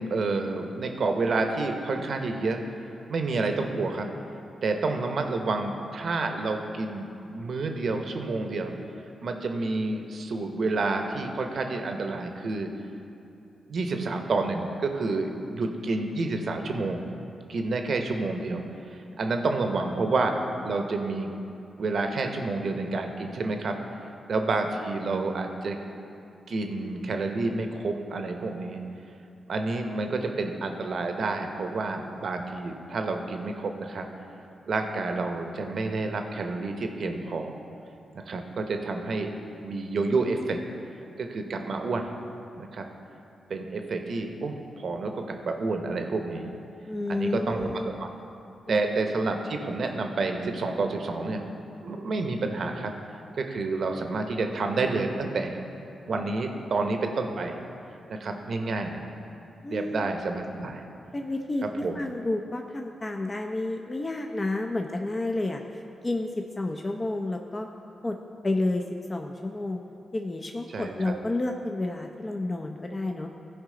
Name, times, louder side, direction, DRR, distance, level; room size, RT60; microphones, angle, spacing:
voice 1, 0.0-2.6 3.1-4.1 4.6-8.7 9.2-12.7 13.7-17.0 17.5-18.6 18.9-20.4 20.6-21.3 21.8-23.7 24.3-25.8 26.5-28.8 29.5-34.1 34.7-37.6 38.1-39.3 39.6-40.6 41.2-42.1 42.6-42.9 43.5-46.5 47.1-48.1 48.7-51.4 51.8-52.9 53.4-55.6 56.1-57.6 58.1-59.1 59.7-60.9 61.6-62.0 70.7-71.1, right 3 dB, 65° right, 5 dB, 0.8 m, -29 dB
voice 2, 46.9-47.9 48.7-48.8 59.6-60.1 61.1-67.7 68.0-68.2 68.4-68.8 69.1-69.8 70.1-73.3, left 2 dB, 35° left, 3 dB, 0.6 m, -30 dB
14.5 x 4.9 x 3.8 m, 2.7 s
supercardioid pair, 40°, 0 cm